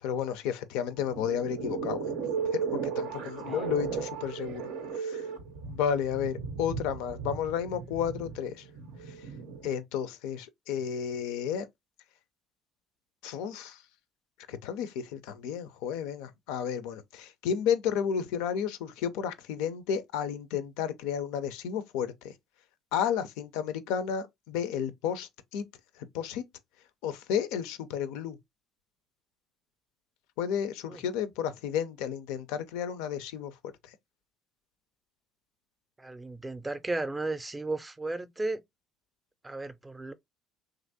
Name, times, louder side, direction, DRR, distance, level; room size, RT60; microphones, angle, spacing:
voice 1, 0.0-2.0 2.5-5.2 5.7-8.6 9.6-11.7 13.2-13.8 14.5-22.1 22.9-25.6 26.1-26.4 27.0-28.4 30.4-33.5, left 8 dB, 75° left, 0.4 m, -32 dB
sound 1, 0.9-9.7, right 6 dB, 75° right, 0.5 m, -35 dB
voice 2, 36.0-38.6 39.4-40.1, right 2 dB, 20° right, 0.4 m, -34 dB
3.0 x 2.5 x 2.5 m
hypercardioid pair, 55°, 0 cm